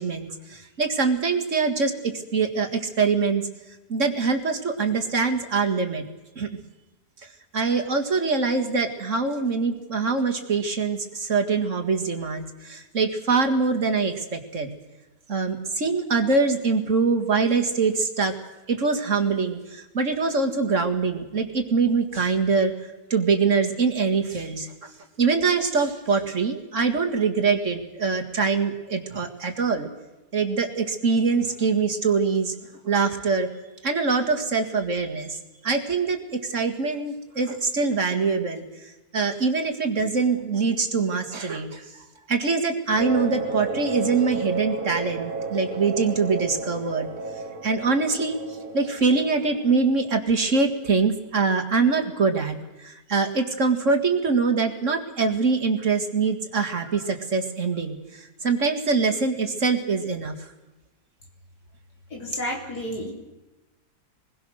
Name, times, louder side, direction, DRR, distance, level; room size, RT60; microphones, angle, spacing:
voice 1, 0.0-3.4 3.9-6.0 6.4-6.6 7.5-14.8 15.3-18.3 18.7-22.7 23.1-24.9 25.2-29.9 30.3-32.5 32.8-33.5 33.8-47.1 47.6-48.4 48.7-60.5, right 4 dB, 50° right, 6 dB, 2.2 m, -24 dB
sound 1, 43.0-50.4, right 3 dB, 35° right, 1.8 m, -33 dB
voice 2, 62.1-63.1, equal, 90° left, 1 dB, 4.3 m, -31 dB
25.5 x 21.0 x 6.4 m, 1.1 s
omnidirectional pair, 1.7 m